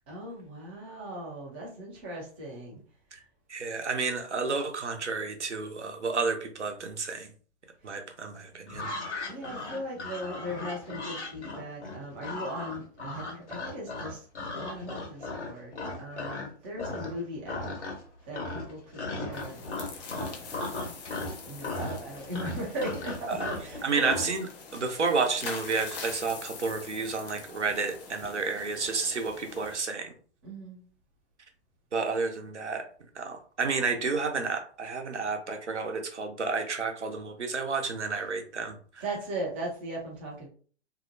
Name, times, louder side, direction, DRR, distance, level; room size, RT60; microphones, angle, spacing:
voice 1, 0.1-2.8 7.8-7.9 9.3-14.3 14.5-17.7 18.2-19.6 20.1-20.6 21.3-24.2 30.4-30.8 39.0-40.5, right 1 dB, 10° right, 0.3 m, -38 dB
voice 2, 3.5-7.3 7.8-8.9 23.3-23.4 23.8-30.1 31.9-32.8 33.1-39.0, right 4 dB, 90° right, 0.7 m, -31 dB
sound 1, 8.7-16.5 16.8-17.2 17.5-18.1 18.3-24.3, left 2 dB, 80° left, 1.2 m, -36 dB
sound 2, 19.3-29.8, left 4 dB, 40° left, 0.7 m, -44 dB
2.7 x 2.0 x 2.6 m
figure-of-eight pair, 125°, 34 cm